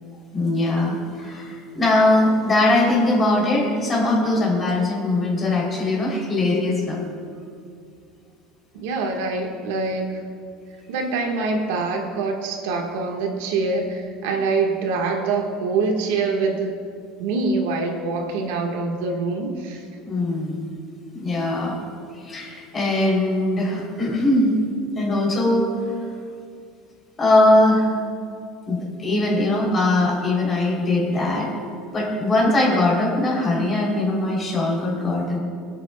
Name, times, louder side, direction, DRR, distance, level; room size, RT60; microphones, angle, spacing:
voice 1, 0.3-7.0 20.0-20.6 21.1-21.8 22.2-24.6 24.9-25.6 27.2-27.9 28.7-31.5 31.9-35.4, left 2 dB, 20° left, -3 dB, 3.1 m, -21 dB
voice 2, 8.7-10.2 10.9-16.8 17.2-19.8, right 3 dB, 85° right, 2 dB, 1.4 m, -24 dB
26.5 x 9.0 x 2.3 m, 2.3 s
cardioid pair, 165°, 0 cm